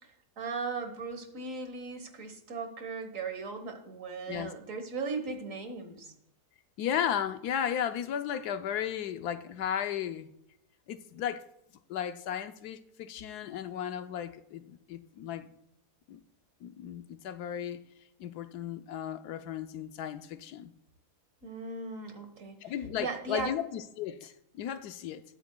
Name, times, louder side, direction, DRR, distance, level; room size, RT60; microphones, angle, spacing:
voice 1, 0.4-6.1 21.4-22.7 23.0-23.5, right 4 dB, 55° right, 1.6 m, -37 dB
voice 2, 6.8-10.3 10.9-11.4 11.9-15.5 16.1-16.2 16.6-17.8 18.2-20.7 22.6-25.2, left 9 dB, 75° left, 1.2 m, -35 dB
21.0 x 8.1 x 2.2 m
omnidirectional pair, 1.7 m